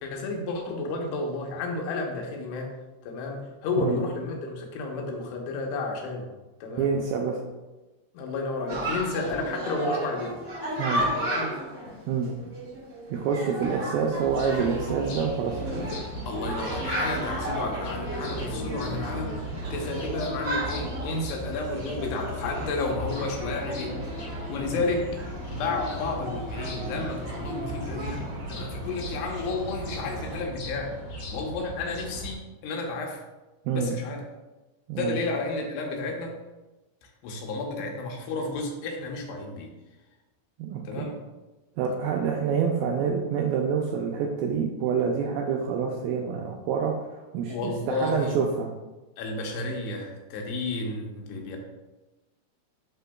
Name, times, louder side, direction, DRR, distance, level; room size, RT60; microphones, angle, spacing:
voice 1, 0.0-2.7 3.0-6.3 6.6-7.0 8.1-10.3 11.2-11.6 16.3-19.4 19.7-24.0 24.5-25.1 25.5-31.0 31.3-33.2 33.7-34.2 34.9-36.3 37.2-39.7 40.9-41.2 47.5-48.4 49.2-51.6, left 3 dB, 85° left, 1 dB, 3.0 m, -32 dB
voice 2, 6.8-7.4 10.8-11.1 12.1-12.3 13.1-15.7 33.7-33.9 34.9-35.2 40.6-41.1 41.8-46.9 47.3-48.7, right 6 dB, 85° right, 0 dB, 2.1 m, -27 dB
Chatter, 8.7-28.3, right 1 dB, 30° right, 1.7 m, -34 dB
sound 1, 14.2-32.4, equal, 65° left, 2.3 m, -38 dB
sound 2, 14.3-30.4, right 1 dB, 60° right, 2.8 m, -42 dB
10.5 x 4.4 x 2.3 m, 1.1 s
omnidirectional pair, 4.7 m